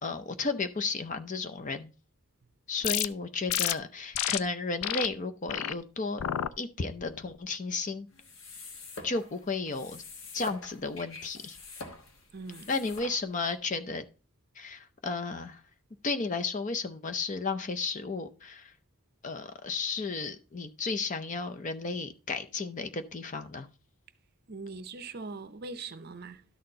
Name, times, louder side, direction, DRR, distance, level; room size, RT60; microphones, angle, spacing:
voice 1, 0.0-1.9 2.7-6.2 6.6-8.1 9.0-10.0 10.3-11.6 12.7-14.0 14.6-15.6 16.0-18.7 19.2-23.7, left 4 dB, 35° left, 0.6 m, -33 dB
sound 1, 2.8-3.1 3.5-3.7 4.1-4.4 4.8-5.1 5.5-5.7 6.2-6.5 7.0-7.4, left 11 dB, 85° left, 0.4 m, -30 dB
sound 2, 8.1-13.5, left 3 dB, 65° left, 1.2 m, -46 dB
voice 2, 12.3-12.7 24.5-26.4, right 3 dB, 45° right, 0.6 m, -41 dB
12.5 x 4.3 x 3.8 m
head